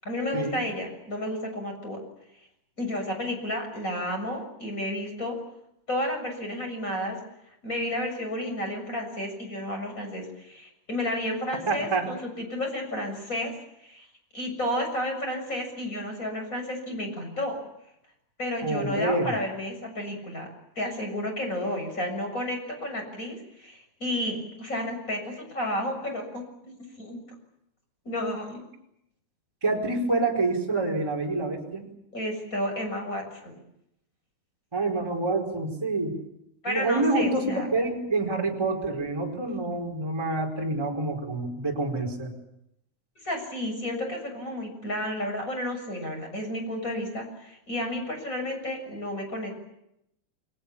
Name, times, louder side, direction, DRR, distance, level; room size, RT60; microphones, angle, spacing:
voice 1, 0.0-2.0 2.8-5.4 5.9-7.2 7.6-13.5 13.8-14.1 14.3-17.6 18.4-20.5 20.8-27.2 28.0-28.6 32.1-33.6 36.6-37.7 43.2-49.6, left 1 dB, 15° left, 4 dB, 7.3 m, -32 dB
voice 2, 11.7-12.1 18.6-19.3 29.6-31.8 34.7-36.1 36.7-42.3, right 2 dB, 5° right, 1 dB, 4.2 m, -27 dB
30.0 x 22.5 x 7.1 m, 0.81 s
omnidirectional pair, 5.3 m